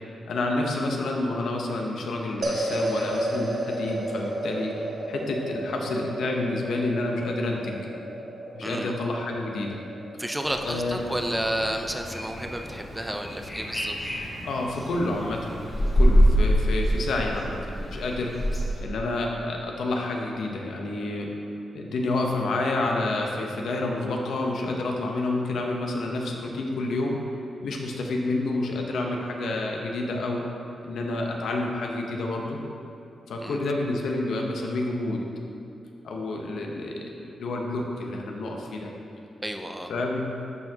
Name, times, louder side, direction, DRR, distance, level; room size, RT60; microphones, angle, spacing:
voice 1, 0.3-4.7 5.1-7.9 8.5-9.8 10.6-11.0 14.4-15.5 15.9-18.4 18.8-21.3 21.7-27.2 27.6-30.4 30.8-32.6 33.3-35.3 36.0-38.9 39.9-40.3, left 2 dB, 80° left, 0 dB, 0.8 m, -29 dB
sound 1, 2.4-12.9, right 1 dB, 50° right, 1.2 m, -33 dB
voice 2, 8.6-8.9 10.2-13.9 33.4-33.7 39.4-39.9, right 1 dB, 10° right, 4 dB, 0.5 m, -31 dB
sound 2, 10.4-18.8, equal, 30° left, 1.6 m, -26 dB
12.5 x 4.3 x 2.8 m, 2.9 s
cardioid pair, 75°, 0 cm